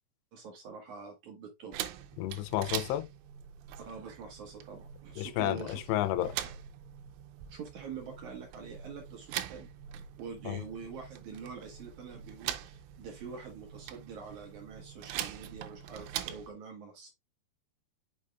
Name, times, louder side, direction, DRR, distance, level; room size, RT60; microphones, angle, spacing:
voice 1, 0.3-1.7 3.9-6.0 7.5-9.7 10.2-17.1, right 5 dB, 70° right, 1.8 m, -45 dB
sound 1, 1.7-16.5, right 11 dB, 90° right, 3.2 m, -43 dB
voice 2, 2.2-3.1 5.2-6.3 10.5-10.6, left 13 dB, 80° left, 2.5 m, -31 dB
6.6 x 6.4 x 2.4 m
omnidirectional pair, 5.4 m